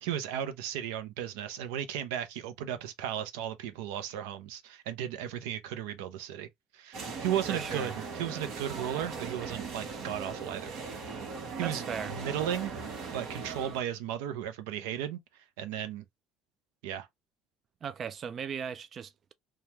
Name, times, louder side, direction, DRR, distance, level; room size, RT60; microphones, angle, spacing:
voice 1, 0.0-6.5 6.7-10.8 11.6-15.2 15.6-16.0 16.8-17.1, right 10 dB, 90° right, 0.6 m, -35 dB
sound 1, 6.9-13.8, right 5 dB, 65° right, 1.2 m, -39 dB
voice 2, 7.5-7.9 11.6-12.2 17.8-19.3, right 7 dB, 40° right, 0.3 m, -37 dB
3.2 x 2.3 x 2.7 m
supercardioid pair, 115°, 0 cm